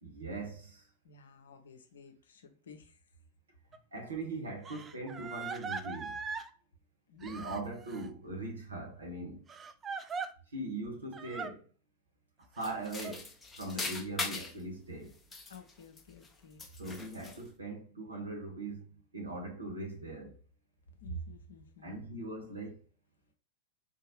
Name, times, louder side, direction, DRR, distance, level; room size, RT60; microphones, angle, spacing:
voice 1, 0.0-0.8 3.9-6.2 7.2-9.4 10.5-11.6 12.5-13.3 13.6-15.2 16.8-20.4 21.8-22.8, right 2 dB, 75° right, 1.1 m, -40 dB
voice 2, 1.0-3.0 7.1-7.7 13.7-13.8 15.5-16.6 20.9-22.1, right 1 dB, 65° left, 0.6 m, -49 dB
Crying sobbing, 3.7-3.8 4.6-6.5 7.2-8.1 9.5-10.3 11.1-11.5 12.6-13.2, right 5 dB, 20° right, 0.3 m, -40 dB
sound 1, 12.6-14.6 15.1-16.3 16.6-17.5, left 3 dB, 15° left, 0.7 m, -40 dB
3.6 x 2.8 x 3.0 m
figure-of-eight pair, 90°, 0 cm